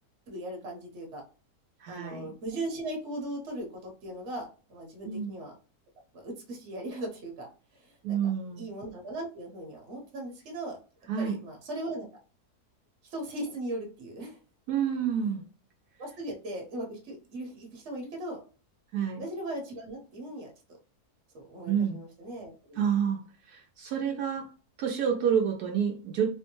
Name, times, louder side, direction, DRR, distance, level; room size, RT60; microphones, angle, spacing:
voice 1, 0.3-1.2 1.9-5.5 6.1-7.5 7.7-8.3 8.6-10.8 11.2-12.1 13.1-14.4 16.0-18.4 19.2-20.5 21.3-22.8, right 1 dB, 50° right, 0 dB, 1.3 m, -38 dB
voice 2, 1.8-2.3 5.0-5.3 8.0-8.6 11.1-11.4 14.7-15.4 18.9-19.2 21.7-22.0 22.8-23.2 23.5-24.5 24.8-26.3, right 8 dB, 80° right, 1 dB, 1.2 m, -28 dB
3.9 x 2.1 x 2.9 m, 0.37 s
omnidirectional pair, 1.7 m